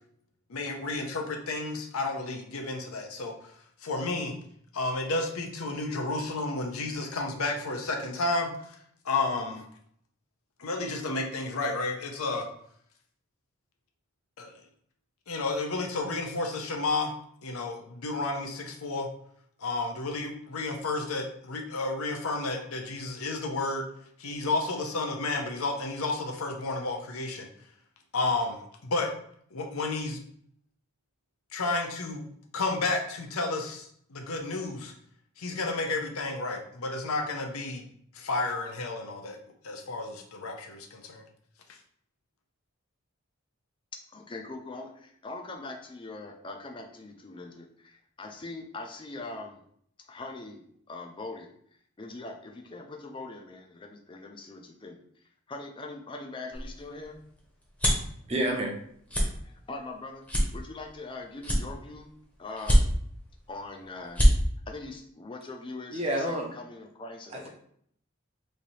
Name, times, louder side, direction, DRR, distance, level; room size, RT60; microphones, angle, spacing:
voice 1, 0.5-3.3 3.8-4.3 4.7-8.8 9.0-9.6 10.6-12.5 14.4-14.5 15.3-17.1 17.4-19.1 19.6-23.8 24.2-27.5 28.1-29.1 29.5-30.2 31.5-32.2 32.5-34.9 35.4-37.9 38.1-39.4 39.6-41.2, left 3 dB, 85° left, 3 dB, 0.7 m, -31 dB
voice 2, 44.1-49.6 50.1-50.6 50.9-51.5 52.0-55.0 55.5-57.2 59.7-60.2 60.5-62.1 62.4-62.9 63.5-64.3 64.7-67.5, left 2 dB, 25° left, 3 dB, 0.4 m, -41 dB
sound 1, 56.5-58.1 58.6-58.8 59.1-59.3 59.8-59.9 60.3-61.1 61.4-62.1 62.6-63.2 63.7-63.8 64.0-64.3, equal, 5° left, 0.8 m, -23 dB
voice 3, 58.3-58.7 65.9-66.5 67.3-67.5, right 1 dB, 30° right, 0 dB, 0.7 m, -28 dB
3.2 x 2.7 x 4.0 m, 0.65 s
head